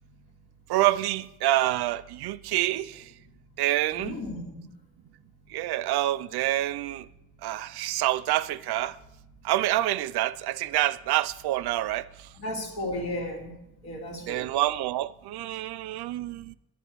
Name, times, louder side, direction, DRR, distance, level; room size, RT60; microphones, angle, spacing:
voice 1, 0.7-3.1 3.6-4.2 5.5-7.1 7.4-9.0 9.4-12.3 14.2-16.5, right 15 dB, 80° right, 0.5 m, -27 dB
voice 2, 3.9-4.7 12.4-13.5 13.8-14.5, left 1 dB, 75° left, 2.5 m, -34 dB
11.5 x 9.2 x 4.6 m
cardioid pair, 170°, 38 cm